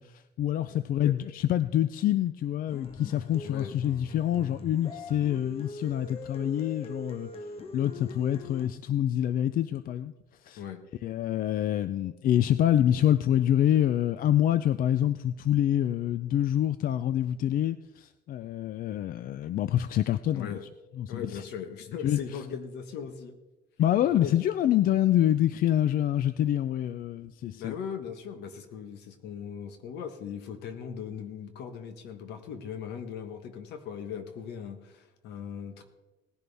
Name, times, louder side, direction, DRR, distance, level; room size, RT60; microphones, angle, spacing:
voice 1, 0.0-7.3 7.7-10.1 10.4-10.6 11.0-20.6 21.0-21.4 22.0-22.2 23.8-27.7, left 11 dB, 60° left, 13 dB, 0.5 m, -26 dB
sound 1, 2.7-8.7, left 3 dB, 35° left, 1.2 m, -42 dB
voice 2, 20.3-20.6 21.1-23.4 24.0-24.3 27.5-35.8, left 7 dB, 80° left, 8 dB, 1.4 m, -39 dB
18.5 x 11.0 x 3.5 m, 1.1 s
cardioid pair, 110°, 17 cm